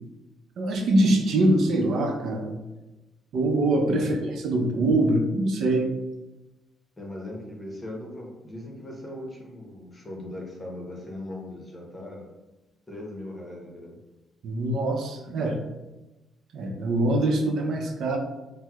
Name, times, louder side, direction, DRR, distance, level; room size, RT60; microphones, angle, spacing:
voice 1, 0.6-2.6 3.3-4.2 4.4-5.9 14.4-15.6 16.5-18.2, right 1 dB, 70° right, 3 dB, 0.5 m, -23 dB
voice 2, 7.0-12.3 12.9-14.0, left 1 dB, 20° left, -2 dB, 0.9 m, -39 dB
4.3 x 2.1 x 2.3 m, 1.1 s
cardioid pair, 90°, 0 cm